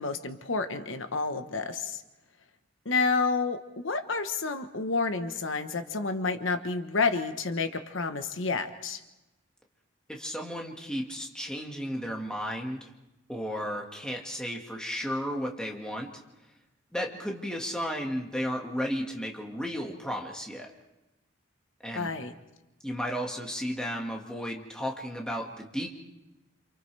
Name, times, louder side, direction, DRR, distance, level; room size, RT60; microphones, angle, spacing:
voice 1, 0.0-2.0 2.8-9.0 21.9-22.3, left 4 dB, 75° left, 8 dB, 1.1 m, -29 dB
voice 2, 10.1-12.9 13.3-16.1 16.9-20.7 21.8-22.1 22.8-25.9, equal, 5° left, 0 dB, 1.8 m, -34 dB
28.5 x 27.5 x 3.4 m, 0.98 s
head